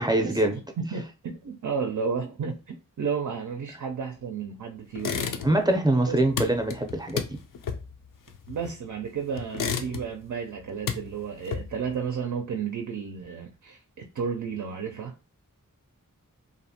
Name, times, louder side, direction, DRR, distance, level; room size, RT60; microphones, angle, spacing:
voice 1, 0.0-0.6 5.4-7.4, right 1 dB, 10° right, 0.5 m, -24 dB
voice 2, 0.8-5.4 6.0-6.2 8.5-15.2, right 6 dB, 65° right, 0.4 m, -32 dB
sound 1, 5.0-5.8 6.0-8.9 9.4-10.3 10.6-11.9, left 6 dB, 75° left, 0.5 m, -32 dB
2.6 x 2.1 x 2.7 m
cardioid pair, 45°, 33 cm